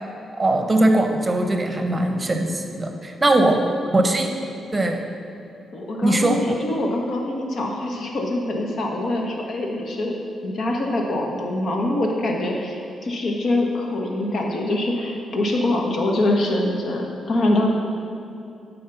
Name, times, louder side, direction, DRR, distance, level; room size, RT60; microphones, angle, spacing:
voice 1, 0.4-3.6 3.9-4.3 4.7-5.0 6.0-6.4, right 1 dB, 25° right, 4 dB, 0.9 m, -20 dB
voice 2, 5.7-10.1 10.4-17.7, left 1 dB, 65° left, 0 dB, 1.2 m, -24 dB
9.5 x 4.2 x 5.8 m, 2.7 s
cardioid pair, 70°, 0 cm